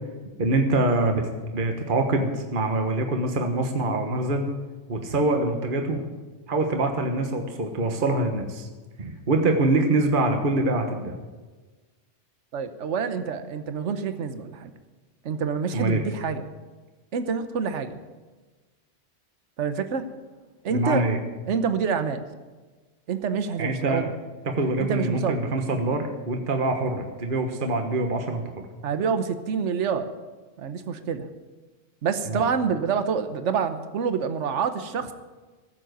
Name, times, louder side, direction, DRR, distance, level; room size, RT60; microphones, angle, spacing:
voice 1, 0.4-1.3 1.5-4.5 4.9-6.1 6.5-8.7 9.0-11.1 15.7-16.0 20.7-21.2 23.6-24.1 24.4-28.5 32.2-32.4, right 2 dB, 45° right, 4 dB, 1.5 m, -24 dB
voice 2, 12.5-14.7 15.2-16.5 17.1-18.0 19.6-20.1 20.6-21.0 21.5-22.2 23.1-24.1 24.9-25.4 28.8-30.1 30.6-31.3 32.0-35.1, right 6 dB, 75° right, 10 dB, 1.3 m, -27 dB
15.5 x 7.5 x 9.3 m, 1.3 s
omnidirectional pair, 1.3 m